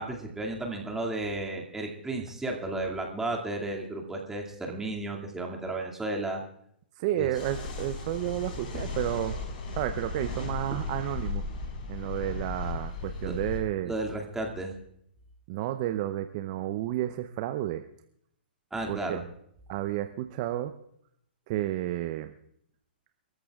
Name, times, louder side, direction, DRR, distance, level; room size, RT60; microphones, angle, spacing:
voice 1, 0.0-6.4 7.1-7.3 10.7-10.8 13.2-13.3 13.8-14.7 18.7-19.2, right 2 dB, 10° right, 1 dB, 2.4 m, -33 dB
voice 2, 7.0-9.4 9.7-11.5 11.9-13.9 15.5-17.8 18.9-19.2 19.7-20.7 21.5-22.3, right 13 dB, 40° right, 8 dB, 0.7 m, -31 dB
sound 1, 7.3-13.6, left 3 dB, 55° left, 4.5 m, -36 dB
29.0 x 14.0 x 2.4 m, 0.72 s
figure-of-eight pair, 120°, 6 cm